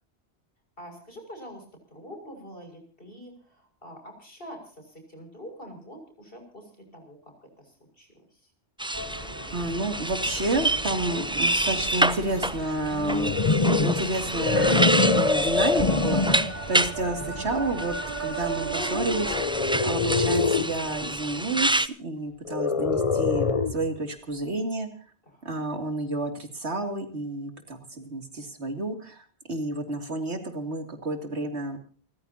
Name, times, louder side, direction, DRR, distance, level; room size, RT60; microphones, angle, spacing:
voice 1, 0.8-8.5 25.2-25.6, equal, 55° left, 5 dB, 6.6 m, -45 dB
sound 1, 8.8-16.9 17.8-21.9, right 1 dB, 5° right, 0.4 m, -28 dB
sound 2, 8.9-19.5, right 2 dB, 55° right, 3.8 m, -36 dB
voice 2, 9.5-13.3 13.8-14.7 15.1-24.9 25.4-31.8, right 2 dB, 75° right, 5 dB, 3.1 m, -30 dB
sound 3, 12.9-16.6 17.2-17.5 19.3-20.8 22.5-23.9, left 4 dB, 35° left, 1.0 m, -24 dB
29.0 x 15.0 x 2.9 m, 0.41 s
omnidirectional pair, 1.1 m